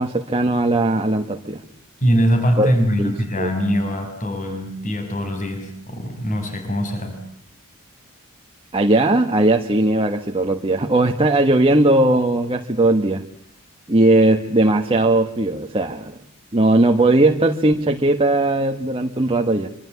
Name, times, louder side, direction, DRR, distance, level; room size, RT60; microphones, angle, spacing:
voice 1, 0.0-1.6 2.6-2.7 3.0-3.5 8.7-13.2 13.9-16.2 16.5-19.7, right 2 dB, 25° right, 4 dB, 1.5 m, -18 dB
voice 2, 2.0-7.2, equal, 35° left, 5 dB, 6.3 m, -22 dB
26.5 x 25.0 x 8.4 m, 0.65 s
head